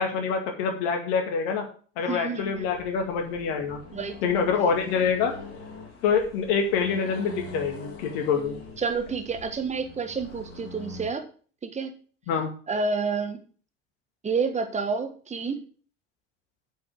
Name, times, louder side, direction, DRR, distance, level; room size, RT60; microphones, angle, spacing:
voice 1, 0.0-1.6 2.0-3.8 4.2-5.3 6.0-8.5 12.3-12.5, left 6 dB, 55° left, 4 dB, 2.1 m, -26 dB
voice 2, 2.1-2.7 3.9-4.2 8.8-11.3 11.6-11.9 12.7-13.4 14.2-15.6, right 4 dB, 20° right, 8 dB, 1.4 m, -29 dB
Accelerating revving vroom, 2.4-11.1, left 2 dB, 40° left, 3.7 m, -43 dB
8.4 x 5.7 x 6.1 m, 0.42 s
figure-of-eight pair, 70°, 36 cm